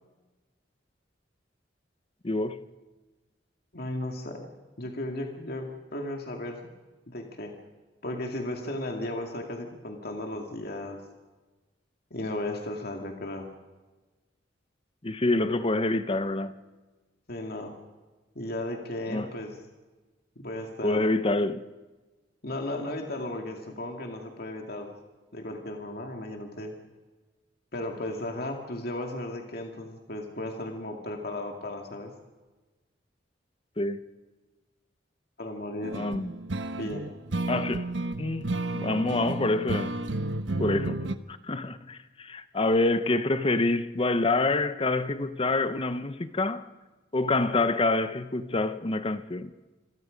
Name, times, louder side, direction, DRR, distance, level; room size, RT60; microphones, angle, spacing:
voice 1, 2.2-2.6 15.0-16.6 19.1-19.3 20.8-21.7 33.8-34.0 35.9-36.3 37.5-37.9 38.2-39.9 40.6-46.7 47.1-49.5, left 2 dB, 30° left, 0.9 m, -27 dB
voice 2, 3.7-4.5 4.8-6.7 7.1-7.5 8.0-11.0 12.1-13.5 17.3-17.7 18.4-19.6 20.4-21.1 22.4-24.9 25.3-26.7 27.7-32.1 35.4-36.0 36.8-37.1, left 1 dB, 60° left, 2.4 m, -35 dB
sound 1, 35.8-41.1, right 2 dB, 85° right, 1.1 m, -32 dB
28.0 x 22.5 x 5.2 m
head